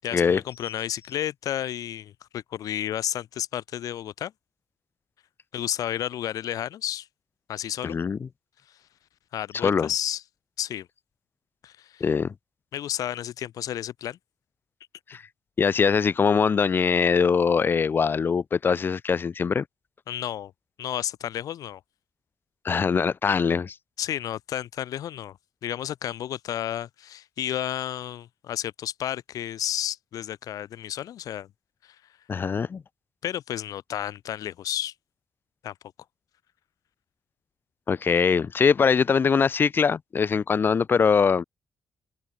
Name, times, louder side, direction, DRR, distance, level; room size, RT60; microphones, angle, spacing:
voice 1, 0.0-4.3 5.5-7.1 7.5-8.0 9.3-10.2 10.6-10.9 11.6-12.1 12.7-14.2 20.1-20.5 20.8-21.8 24.0-25.4 25.6-31.5 33.2-34.9 35.6-35.7, left 11 dB, 85° left, 7.8 m, -32 dB
voice 2, 7.8-8.3 9.6-9.9 12.0-12.3 15.1-15.2 15.6-19.6 22.6-23.7 32.3-32.8 37.9-41.4, left 6 dB, 35° left, 2.3 m, -22 dB
wide cardioid pair, 160°, 6 cm